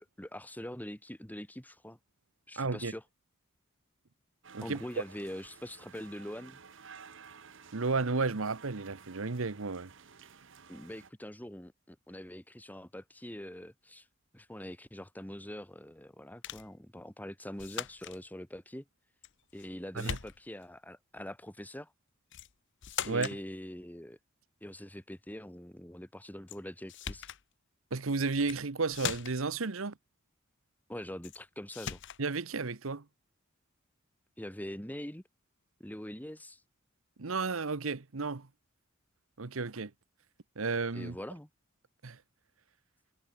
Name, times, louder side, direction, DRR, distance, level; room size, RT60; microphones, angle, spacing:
voice 1, 0.0-2.0 2.5-3.0 4.6-6.6 10.7-14.1 14.3-18.8 19.5-21.9 23.1-24.2 24.6-27.3 30.9-32.0 34.4-35.2 35.8-36.6 40.9-41.5, left 1 dB, 10° left, 2.3 m, -43 dB
voice 2, 2.6-2.9 4.5-4.8 7.7-9.9 19.9-20.2 23.0-23.3 27.9-29.9 32.2-33.0 37.2-38.5 39.4-39.9 40.6-41.2 42.0-42.2, right 4 dB, 80° right, 1.0 m, -33 dB
sound 1, 4.4-11.1, right 6 dB, 65° right, 1.5 m, -53 dB
sound 2, 16.4-16.7 17.6-18.2 19.2-19.7 20.0-20.7 22.3-22.5 22.8-23.4 26.5-26.6 26.9-27.4 28.3-28.6 28.9-29.5 31.2-31.4 31.7-32.2, left 8 dB, 60° left, 0.9 m, -40 dB
head